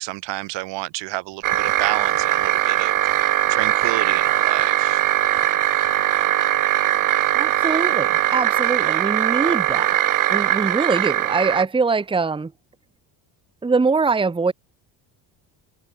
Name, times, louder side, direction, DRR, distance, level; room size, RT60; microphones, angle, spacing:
voice 1, 0.0-3.0 3.2-5.0 8.8-9.0, right 20 dB, 85° right, 4.9 m, -30 dB
sound 1, 1.4-11.7, right 13 dB, 50° right, 1.4 m, -20 dB
voice 2, 7.3-10.0 10.3-12.5 13.6-14.5, right 4 dB, 10° right, 1.3 m, -22 dB
cardioid pair, 145°, 42 cm